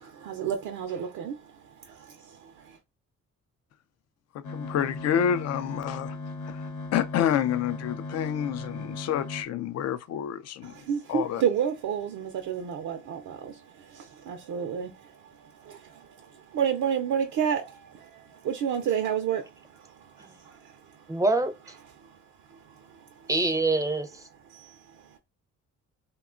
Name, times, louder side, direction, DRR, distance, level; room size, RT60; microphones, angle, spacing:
voice 1, 0.0-2.8 10.6-21.2 22.0-23.3 24.5-25.2, right 8 dB, 70° right, 0.5 m, -32 dB
voice 2, 4.3-6.2 6.4-6.6 6.9-10.8 11.1-11.4, left 9 dB, 55° left, 0.4 m, -28 dB
sound 1, 4.4-9.4, left 2 dB, 75° left, 0.9 m, -37 dB
voice 3, 21.1-21.5 23.3-24.2, right 2 dB, 10° right, 0.5 m, -25 dB
2.9 x 2.2 x 2.4 m
cardioid pair, 90°, 30 cm